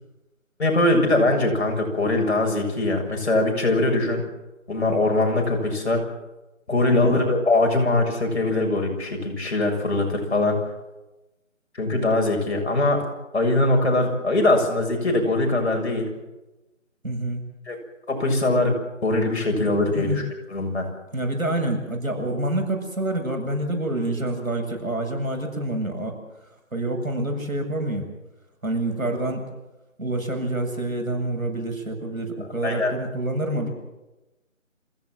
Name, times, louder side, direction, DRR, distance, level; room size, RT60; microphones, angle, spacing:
voice 1, 0.6-4.2 4.7-6.0 6.7-10.6 11.7-13.1 13.3-16.1 17.7-17.8 18.1-18.8 19.0-20.2 20.5-20.8 32.6-32.9, left 2 dB, 55° left, 2 dB, 7.1 m, -22 dB
voice 2, 6.9-7.3 17.0-17.4 19.6-19.7 19.9-20.2 21.1-26.1 26.7-28.1 28.6-29.4 30.0-33.7, right 1 dB, 90° right, 3 dB, 7.5 m, -27 dB
27.0 x 17.0 x 7.7 m, 1.0 s
figure-of-eight pair, 165°, 40 cm